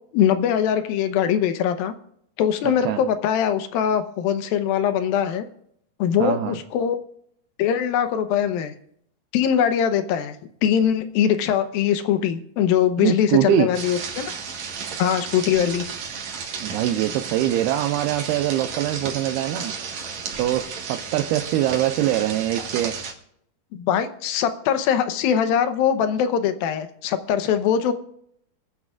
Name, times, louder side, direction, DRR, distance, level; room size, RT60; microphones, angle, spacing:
voice 1, 0.1-1.9 2.4-5.4 6.0-7.0 7.6-8.7 9.3-10.4 10.6-14.3 15.0-15.9 23.7-27.9, left 9 dB, 75° left, 9 dB, 2.5 m, -22 dB
voice 2, 6.2-6.6 13.0-13.7 16.6-19.7 20.4-22.9, right 13 dB, 90° right, 5 dB, 2.7 m, -23 dB
sound 1, 13.7-23.1, right 6 dB, 55° right, 2.3 m, -33 dB
26.5 x 9.9 x 2.4 m, 0.70 s
omnidirectional pair, 4.5 m